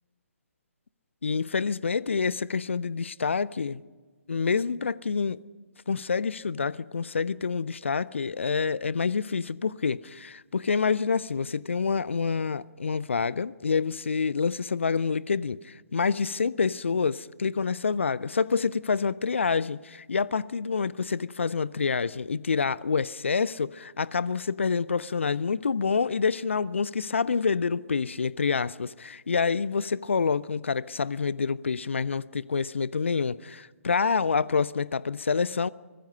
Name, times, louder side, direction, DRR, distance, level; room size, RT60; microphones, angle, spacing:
voice 1, 1.2-3.8 4.3-5.4 5.9-35.7, left 5 dB, 55° left, 0.5 m, -27 dB
24.5 x 21.0 x 5.6 m
figure-of-eight pair, 135°, 8 cm